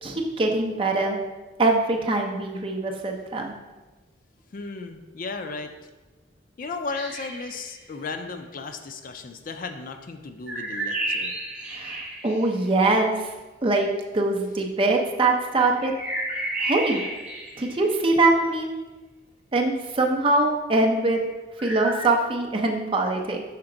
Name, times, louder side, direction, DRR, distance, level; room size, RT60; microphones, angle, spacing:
voice 1, 0.0-1.2 1.6-3.5 11.7-13.3 13.6-13.9 14.1-15.9 16.6-17.0 17.6-18.7 19.5-21.2 21.6-23.4, right 2 dB, 25° right, 1 dB, 0.6 m, -23 dB
voice 2, 4.5-5.7 6.6-11.3, left 4 dB, 45° left, 7 dB, 0.4 m, -35 dB
sound 1, 6.9-7.8 10.5-12.9 15.7-18.4 21.6-22.0, right 1 dB, 5° right, 1.2 m, -32 dB
5.9 x 4.3 x 3.8 m, 1.2 s
head